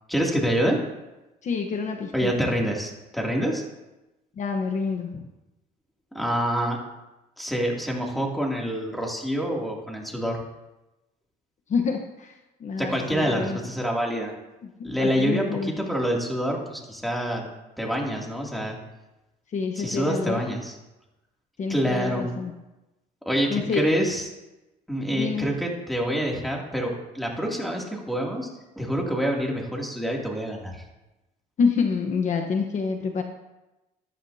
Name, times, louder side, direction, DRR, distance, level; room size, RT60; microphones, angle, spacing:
voice 1, 0.1-0.8 2.1-3.6 6.1-6.8 7.4-10.4 12.8-14.3 14.8-17.5 17.8-18.8 19.8-20.7 21.7-22.2 23.3-24.3 24.9-28.5 28.8-30.7, equal, ahead, -2 dB, 2.7 m, -26 dB
voice 2, 1.4-2.3 4.4-5.3 11.7-12.3 12.6-13.6 15.0-15.7 19.5-20.4 21.6-22.5 23.5-23.8 25.1-25.5 31.6-33.2, left 5 dB, 45° left, 4 dB, 1.1 m, -27 dB
13.5 x 13.5 x 2.8 m, 1.0 s
cardioid pair, 110°, 17 cm